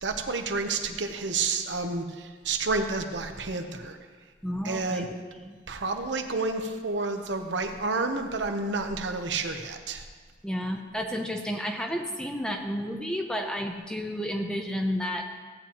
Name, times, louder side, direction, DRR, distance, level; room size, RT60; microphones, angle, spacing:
voice 1, 0.0-4.0 4.6-5.1 5.7-10.0, right 3 dB, 75° right, 5 dB, 0.9 m, -30 dB
voice 2, 4.4-5.1 5.5-5.6 10.4-15.3, equal, 5° left, 3 dB, 0.7 m, -31 dB
15.5 x 8.7 x 3.0 m, 1.5 s
head